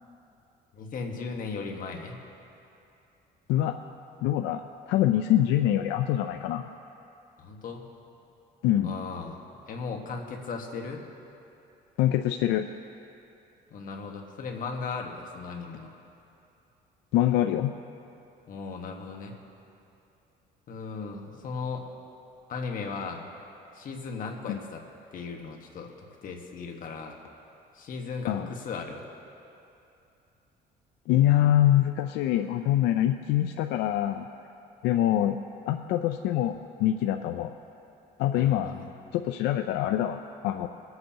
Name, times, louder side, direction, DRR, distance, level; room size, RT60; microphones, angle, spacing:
voice 1, 0.7-2.2 7.4-7.9 8.8-11.0 13.7-15.9 18.5-19.3 20.7-21.8 22.5-23.2 23.7-24.8 25.1-27.2 27.7-29.0 38.3-38.9, left 4 dB, 55° left, 2 dB, 1.4 m, -37 dB
voice 2, 4.2-6.7 8.6-8.9 12.0-12.7 17.1-17.7 24.5-24.6 28.3-28.5 31.1-34.3 34.8-35.4 35.7-37.5 38.2-38.7 39.1-40.7, left 12 dB, 85° left, 6 dB, 0.4 m, -25 dB
23.0 x 8.0 x 2.9 m, 2.7 s
cardioid pair, 110°, 17 cm